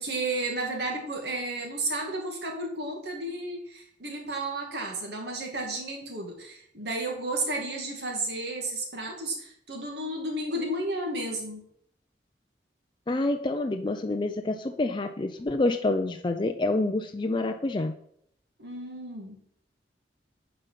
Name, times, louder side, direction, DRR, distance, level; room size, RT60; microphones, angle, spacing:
voice 1, 0.0-11.7 18.6-19.4, right 2 dB, 65° right, 1 dB, 2.2 m, -32 dB
voice 2, 13.1-17.9, left 2 dB, 25° left, 5 dB, 0.5 m, -27 dB
9.1 x 5.3 x 5.7 m, 0.68 s
head